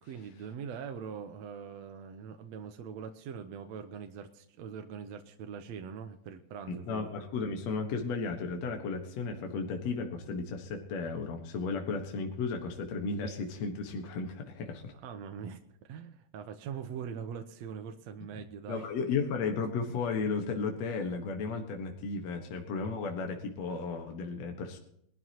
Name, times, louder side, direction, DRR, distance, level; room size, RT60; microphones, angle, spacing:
voice 1, 0.0-7.1 14.9-18.9, right 7 dB, 70° right, 6 dB, 2.0 m, -42 dB
voice 2, 6.7-14.9 18.7-24.8, left 4 dB, 65° left, 3 dB, 2.6 m, -34 dB
22.5 x 12.5 x 3.0 m, 0.72 s
omnidirectional pair, 3.4 m